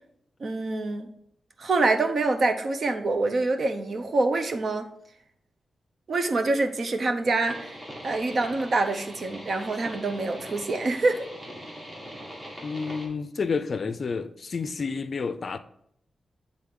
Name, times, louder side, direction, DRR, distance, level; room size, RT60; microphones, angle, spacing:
voice 1, 0.4-1.1 1.6-4.9 6.1-7.7 8.0-11.3, right 3 dB, 50° right, 0.8 m, -26 dB
sound 1, 7.4-13.1, equal, 25° right, 2.1 m, -41 dB
voice 2, 12.6-15.6, left 5 dB, 45° left, 0.4 m, -30 dB
9.4 x 3.8 x 3.7 m
wide cardioid pair, 125°, 0 cm